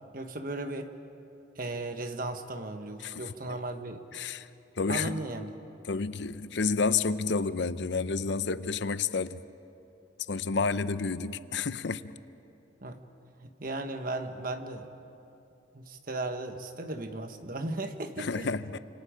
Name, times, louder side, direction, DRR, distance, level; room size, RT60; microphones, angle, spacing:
voice 1, 0.1-0.9 1.6-4.0 4.9-5.5 12.8-13.0 13.4-14.9 15.7-18.5, right 2 dB, 45° right, 7 dB, 1.3 m, -36 dB
voice 2, 3.0-3.3 4.1-4.5 4.8-5.2 5.8-9.4 10.3-12.1 18.2-18.8, left 4 dB, 60° left, 14 dB, 0.6 m, -30 dB
29.0 x 27.0 x 5.2 m, 2.8 s
head